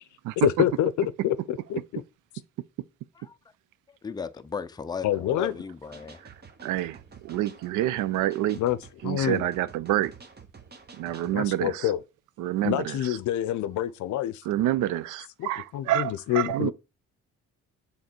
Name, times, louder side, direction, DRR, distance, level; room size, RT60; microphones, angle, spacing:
voice 1, 0.4-2.0 5.0-5.5 8.6-8.8 9.0-9.5 11.3-12.0 12.6-14.4 15.4-16.7, left 12 dB, 70° left, 0.5 m, -27 dB
voice 2, 3.9-6.2, left 6 dB, 15° left, 0.4 m, -36 dB
sound 1, 5.9-11.4, right 5 dB, 35° right, 1.1 m, -50 dB
voice 3, 6.6-8.6 9.0-10.1 11.0-11.9 12.4-13.2 14.5-16.7, right 13 dB, 90° right, 0.5 m, -28 dB
6.5 x 3.6 x 4.4 m
cardioid pair, 90°, 30 cm